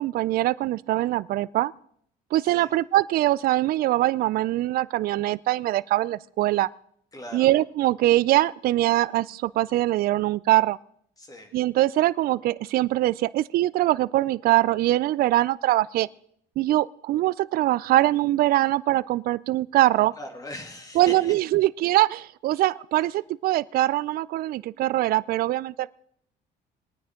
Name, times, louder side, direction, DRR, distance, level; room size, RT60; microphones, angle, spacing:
voice 1, 0.0-1.7 2.3-6.7 7.3-10.8 11.5-16.1 16.6-20.1 21.0-25.9, right 15 dB, 60° right, 19 dB, 0.4 m, -23 dB
voice 2, 7.1-7.5 11.2-11.5 20.0-21.3, left 1 dB, 20° left, 4 dB, 2.5 m, -40 dB
21.5 x 9.3 x 3.7 m, 0.66 s
cardioid pair, 110°, 17 cm